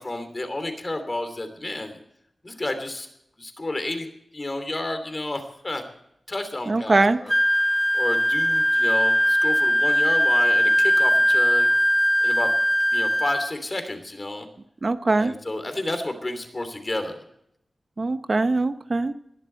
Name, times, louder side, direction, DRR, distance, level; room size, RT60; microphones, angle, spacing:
voice 1, 0.0-2.0 2.4-3.1 3.4-4.1 4.3-5.8 6.3-7.3 7.9-11.7 12.2-12.5 12.9-14.5 15.2-17.2, left 2 dB, 30° left, 7 dB, 2.9 m, -31 dB
voice 2, 6.7-7.2 14.8-15.3 18.0-19.1, right 3 dB, 45° right, 10 dB, 0.8 m, -22 dB
Wind instrument woodwind instrument, 7.3-13.5, equal, 5° left, 0.5 m, -20 dB
20.0 x 12.0 x 4.5 m, 0.75 s
wide cardioid pair, 105°, 0 cm